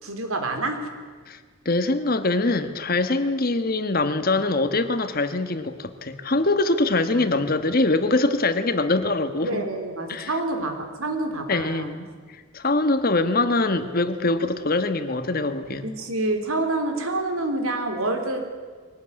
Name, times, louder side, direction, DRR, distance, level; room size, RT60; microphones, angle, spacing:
voice 1, 0.0-0.8 7.1-7.3 9.4-12.1 15.8-18.4, right 2 dB, 85° right, 5 dB, 3.7 m, -27 dB
voice 2, 1.6-9.6 10.1-10.3 11.5-12.1 12.5-15.9, left 2 dB, 45° left, 10 dB, 1.4 m, -23 dB
23.0 x 18.5 x 9.9 m, 1.5 s
head